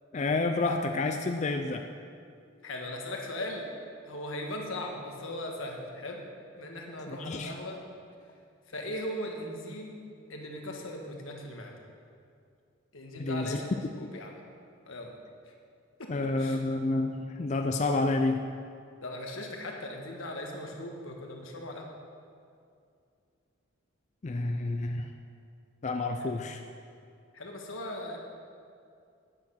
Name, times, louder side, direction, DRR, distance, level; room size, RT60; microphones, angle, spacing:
voice 1, 0.1-1.8 7.1-7.5 13.2-13.6 16.1-18.4 24.2-25.1 25.8-26.6, left 2 dB, 35° left, 5 dB, 0.4 m, -29 dB
voice 2, 2.6-3.7 4.1-6.2 6.6-7.8 8.7-9.9 10.3-11.8 12.9-13.7 14.0-14.3 14.8-15.2 15.5-15.6 16.0-16.1 16.4-16.6 19.0-21.9 26.2-26.4 27.3-28.2, left 1 dB, 85° left, 1 dB, 1.5 m, -38 dB
9.0 x 8.7 x 5.7 m, 2.4 s
head